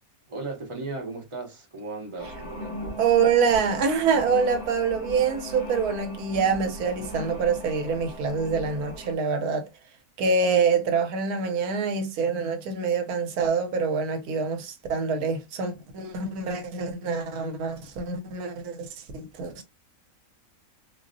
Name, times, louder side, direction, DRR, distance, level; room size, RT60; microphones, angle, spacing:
voice 1, 0.3-3.0, right 3 dB, 30° right, 0.6 m, -36 dB
sound 1, 2.2-9.1, equal, 65° left, 2.1 m, -38 dB
voice 2, 3.0-9.7 10.2-19.6, right 5 dB, 80° right, 1.2 m, -25 dB
3.8 x 2.0 x 2.5 m
omnidirectional pair, 1.6 m